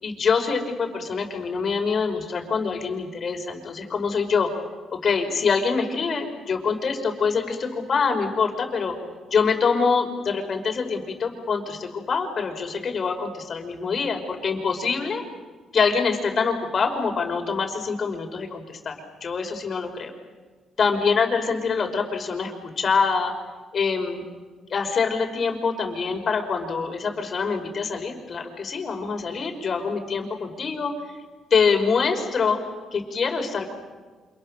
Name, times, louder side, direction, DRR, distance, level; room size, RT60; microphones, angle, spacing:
voice 1, 0.0-4.5 5.0-8.9 9.3-15.2 15.7-18.9 19.2-20.1 20.8-23.3 23.7-24.2 24.7-30.9 31.5-32.6 32.9-33.7, left 5 dB, 50° left, 5 dB, 5.5 m, -25 dB
29.5 x 27.5 x 6.8 m, 1.4 s
cardioid pair, 90°, 0 cm